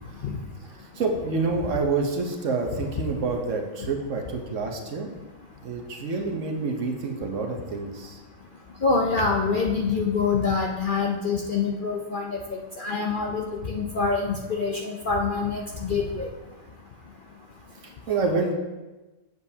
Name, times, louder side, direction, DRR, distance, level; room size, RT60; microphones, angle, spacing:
voice 1, 1.0-5.1 5.6-8.2 18.1-18.5, right 4 dB, 65° right, 3 dB, 1.2 m, -27 dB
voice 2, 8.8-12.4 12.8-16.3, left 4 dB, 50° left, 0 dB, 0.6 m, -25 dB
7.9 x 7.1 x 2.7 m, 1.2 s
omnidirectional pair, 1.5 m